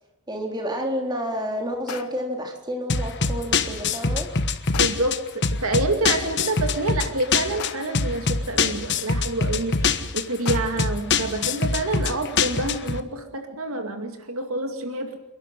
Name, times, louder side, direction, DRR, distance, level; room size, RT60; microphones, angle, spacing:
voice 1, 0.3-4.3, equal, 20° right, 2 dB, 3.6 m, -29 dB
sound 1, 1.9-2.4 4.7-5.3 7.6-8.1 10.5-11.0, left 5 dB, 80° left, 1.0 m, -38 dB
sound 2, 2.9-13.0, left 4 dB, 50° left, 1.3 m, -24 dB
voice 2, 4.8-15.2, right 2 dB, 70° right, 6 dB, 2.3 m, -27 dB
28.5 x 11.5 x 9.4 m, 1.0 s
head